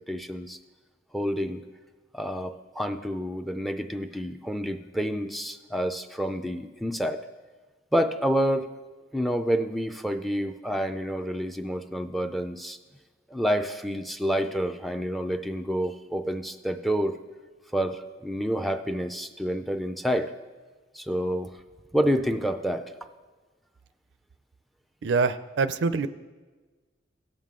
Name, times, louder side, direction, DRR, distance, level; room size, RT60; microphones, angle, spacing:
voice 1, 0.1-0.6 1.1-1.6 2.1-7.2 7.9-8.7 9.1-12.8 13.3-17.2 17.7-20.3 20.9-21.5 21.9-22.9, equal, ahead, 8 dB, 0.4 m, -28 dB
voice 2, 25.0-26.1, right 4 dB, 75° right, 13 dB, 0.4 m, -25 dB
17.0 x 7.4 x 3.7 m, 1.3 s
head